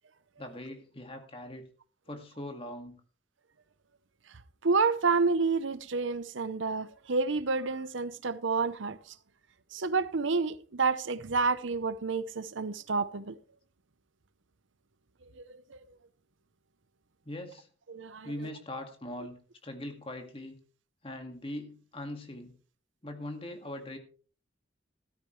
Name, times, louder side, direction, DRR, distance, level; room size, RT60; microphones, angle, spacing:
voice 1, 0.4-1.7 2.1-3.0 17.3-17.7 18.2-20.6 21.0-22.5 23.0-24.0, left 1 dB, 30° left, 2.0 m, -41 dB
voice 2, 4.6-9.0 9.7-13.4 15.4-15.8 17.9-18.3, right 4 dB, 75° right, 0.8 m, -29 dB
13.5 x 13.0 x 3.2 m
head